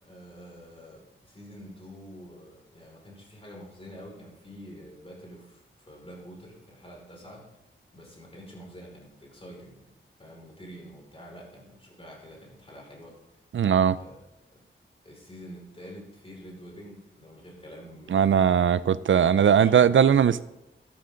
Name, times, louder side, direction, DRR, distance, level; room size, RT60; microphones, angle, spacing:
voice 1, 0.0-7.5 7.9-9.8 10.2-13.2 14.0-14.2 15.0-18.7 19.3-19.8, equal, 25° left, 5.5 m, -47 dB
voice 2, 13.5-14.0 18.1-20.4, right 8 dB, 70° right, 0.5 m, -19 dB
13.0 x 12.0 x 3.9 m
wide cardioid pair, 80°, 21 cm